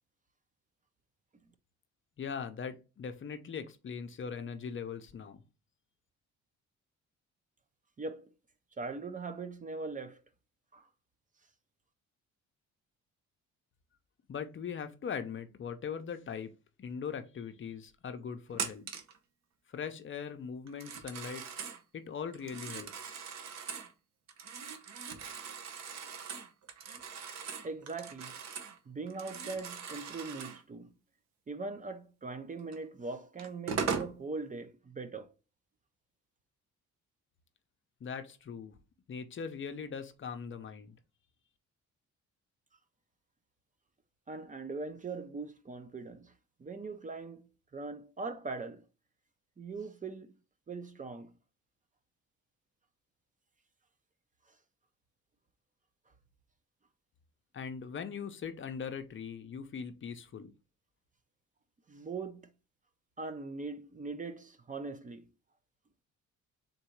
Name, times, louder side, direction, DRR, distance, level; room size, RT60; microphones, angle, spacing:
voice 1, 2.2-5.4 14.3-16.5 16.8-18.9 19.7-21.4 21.9-23.2 38.0-38.8 39.1-41.0 57.5-60.5, left 6 dB, 40° left, 0.6 m, -40 dB
voice 2, 8.0-8.3 8.8-10.2 10.7-10.9 27.6-28.3 28.9-30.9 31.5-35.3 44.3-46.3 46.6-48.8 49.6-50.3 50.7-51.3 61.9-62.5 63.2-65.3, right 3 dB, 25° right, 0.6 m, -41 dB
Telephone, 18.5-19.2 20.7-21.8 22.3-23.9 24.3-28.8 29.1-30.6 32.7-32.8 33.4-34.1, right 6 dB, 60° right, 0.9 m, -40 dB
3.9 x 2.6 x 4.4 m
cardioid pair, 90°, 30 cm